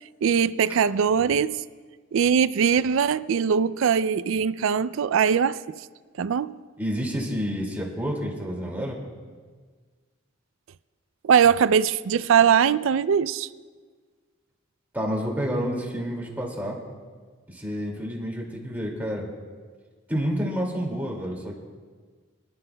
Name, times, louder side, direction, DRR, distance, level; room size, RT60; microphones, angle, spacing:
voice 1, 0.2-1.6 2.1-5.8 6.2-6.5 11.2-13.5, right 7 dB, 65° right, 0.4 m, -21 dB
voice 2, 6.8-9.0 14.9-16.8 17.5-19.3 20.1-21.5, equal, 10° right, 2.2 m, -29 dB
25.0 x 11.5 x 2.2 m
head